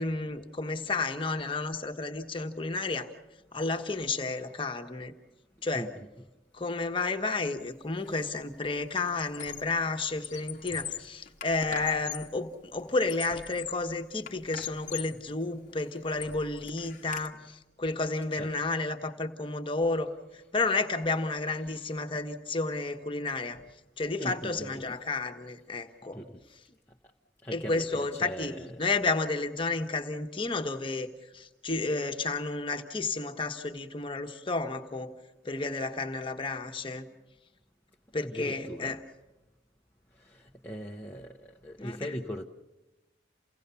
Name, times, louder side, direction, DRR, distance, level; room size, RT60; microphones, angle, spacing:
voice 1, 0.0-3.1 3.5-5.1 5.6-5.9 6.6-20.1 20.5-23.6 24.0-26.2 27.5-28.5 28.8-31.1 31.3-35.1 35.4-37.1 38.1-39.0 41.8-42.0, left 3 dB, 30° left, 5 dB, 1.3 m, -31 dB
voice 2, 5.7-6.1 18.3-18.5 21.7-21.8 24.2-25.0 26.1-26.4 27.4-28.8 38.2-39.0 40.3-42.4, equal, 10° left, -2 dB, 0.8 m, -40 dB
Squeak, 8.0-8.3 8.6-9.8 10.1-12.4 12.9-13.9 14.3-15.2 15.7-17.3, left 9 dB, 45° left, 1.0 m, -42 dB
29.0 x 17.0 x 7.0 m, 1.1 s
head